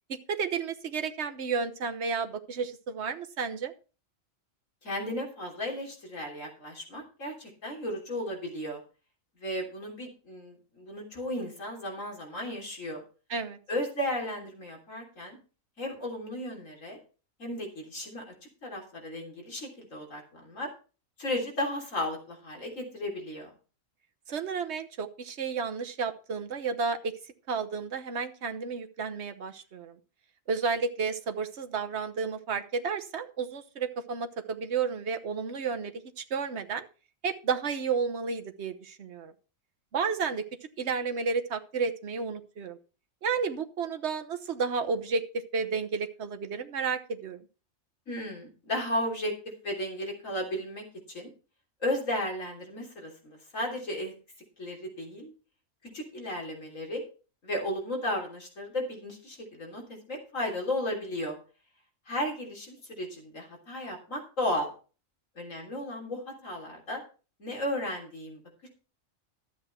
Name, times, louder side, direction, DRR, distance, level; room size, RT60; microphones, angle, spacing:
voice 1, 0.1-3.7 13.3-13.6 24.3-27.1 27.5-30.0 30.5-36.9 37.2-39.3 39.9-40.4 40.8-42.8 43.2-47.4, right 5 dB, 55° right, 7 dB, 1.3 m, -32 dB
voice 2, 4.8-8.8 9.4-13.0 13.7-15.4 15.8-17.0 17.4-18.3 18.6-20.7 21.2-23.5 48.1-49.3 49.6-51.3 51.8-54.1 54.6-55.3 55.9-57.0 57.4-61.4 62.1-64.7 65.4-67.0 67.4-68.7, left 1 dB, 70° left, 0 dB, 3.8 m, -34 dB
12.5 x 8.1 x 4.4 m, 0.36 s
omnidirectional pair, 1.4 m